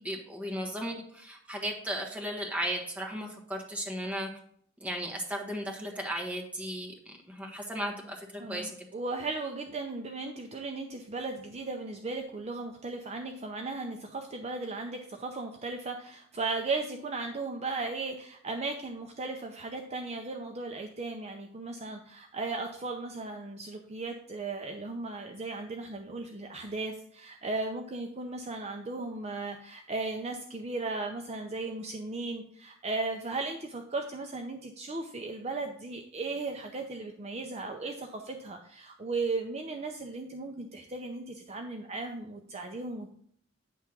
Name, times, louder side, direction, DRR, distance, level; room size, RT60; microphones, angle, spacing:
voice 1, 0.0-4.3 4.8-8.9, equal, 5° right, 1 dB, 1.4 m, -35 dB
voice 2, 8.4-43.1, right 3 dB, 35° right, 4 dB, 0.6 m, -36 dB
9.2 x 3.5 x 5.9 m, 0.63 s
head